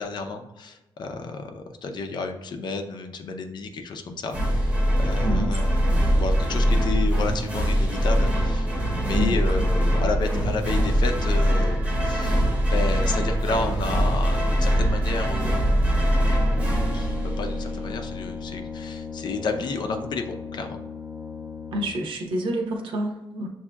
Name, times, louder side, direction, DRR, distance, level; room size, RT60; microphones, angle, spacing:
voice 1, 0.0-16.1 16.9-20.8, left 4 dB, 55° left, 5 dB, 0.5 m, -32 dB
sound 1, 4.3-17.9, equal, 15° right, 0.8 m, -22 dB
voice 2, 9.1-9.6 21.7-23.5, equal, 70° right, 1 dB, 0.8 m, -28 dB
Brass instrument, 16.4-22.2, left 5 dB, 5° left, 0.4 m, -36 dB
6.8 x 2.7 x 2.3 m, 0.97 s
wide cardioid pair, 155°, 9 cm